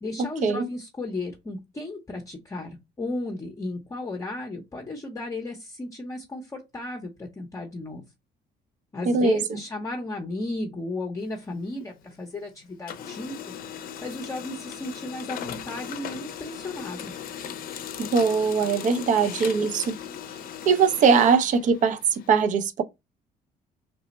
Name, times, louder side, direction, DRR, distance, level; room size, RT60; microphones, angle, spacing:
voice 1, 0.0-8.0 8.9-13.3 13.7-17.1, left 2 dB, 20° left, 0.7 m, -34 dB
voice 2, 9.1-9.4 18.0-20.0 20.7-22.8, right 5 dB, 50° right, 0.5 m, -21 dB
Printer, 11.2-12.5 12.7-22.3, left 9 dB, 60° left, 0.5 m, -38 dB
3.3 x 2.0 x 4.0 m
cardioid pair, 110°, 17 cm